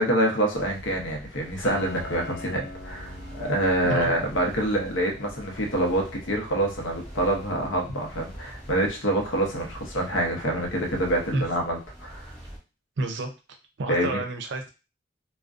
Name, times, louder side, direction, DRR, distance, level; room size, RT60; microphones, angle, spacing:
voice 1, 0.0-12.3 13.9-14.2, right 1 dB, 85° left, 1 dB, 0.7 m, -26 dB
sound 1, 0.5-12.6, equal, 5° left, 0.7 m, -44 dB
Piano, 1.6-11.2, left 2 dB, 35° left, 0.4 m, -46 dB
voice 2, 13.0-13.3 13.8-14.7, right 2 dB, 65° right, 5 dB, 0.5 m, -29 dB
2.4 x 2.1 x 2.4 m, 0.30 s
head